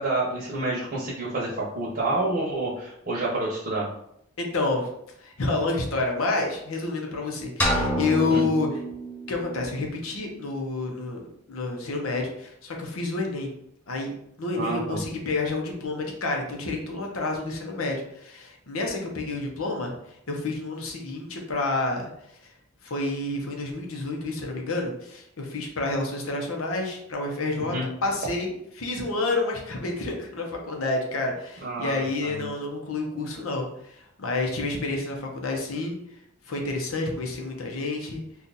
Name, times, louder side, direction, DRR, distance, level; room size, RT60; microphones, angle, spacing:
voice 1, 0.0-3.9 8.3-8.4 14.6-15.0 27.7-27.9 31.6-32.5, right 2 dB, 45° right, -5 dB, 0.8 m, -28 dB
voice 2, 4.4-4.9 5.2-8.7 9.3-13.5 13.9-22.1 22.8-27.7 28.0-36.0 36.5-38.2, left 2 dB, 80° left, 1 dB, 0.7 m, -29 dB
sound 1, 7.6-9.5, equal, 5° left, 0.4 m, -27 dB
2.7 x 2.4 x 3.8 m, 0.75 s
head